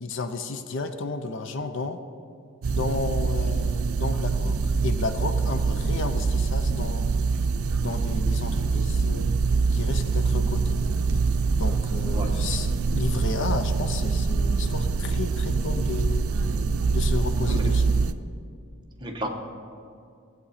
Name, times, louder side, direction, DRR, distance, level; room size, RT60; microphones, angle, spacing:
voice 1, 0.0-2.0 2.7-7.2 7.8-9.3 9.7-10.8 11.6-16.3 16.9-18.0, left 3 dB, 60° left, 8 dB, 0.7 m, -32 dB
sound 1, 2.6-18.1, right 4 dB, 90° right, 0.5 m, -24 dB
voice 2, 17.5-17.9 19.0-19.3, right 1 dB, 20° right, 1 dB, 1.1 m, -33 dB
17.5 x 8.0 x 4.2 m, 2.4 s
head